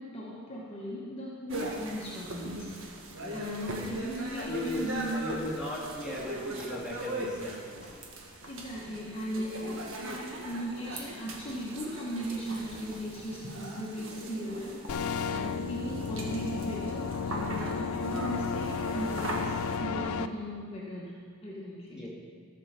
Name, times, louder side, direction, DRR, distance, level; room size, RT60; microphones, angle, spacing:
voice 1, 0.0-2.9 3.3-5.4 8.5-15.0 15.3-22.1, equal, 25° left, -5 dB, 1.2 m, -37 dB
sound 1, 1.5-19.8, right 1 dB, 65° right, 1.6 m, -40 dB
voice 2, 4.4-7.9 21.9-22.1, left 1 dB, 5° right, -6 dB, 2.5 m, -37 dB
sound 2, 14.9-20.3, left 5 dB, 85° left, 0.4 m, -33 dB
14.0 x 5.5 x 6.8 m, 2.1 s
head